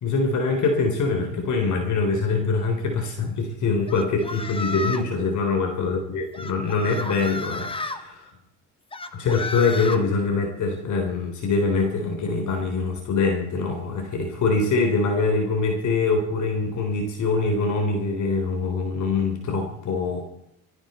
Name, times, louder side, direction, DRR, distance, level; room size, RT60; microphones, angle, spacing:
voice 1, 0.0-8.3 9.1-20.2, left 4 dB, 55° left, 4 dB, 3.8 m, -24 dB
sound 1, 3.9-5.1 6.3-8.0 8.9-10.0, left 3 dB, 15° left, 1.5 m, -32 dB
18.5 x 15.0 x 4.4 m, 0.78 s
cardioid pair, 110°, 35 cm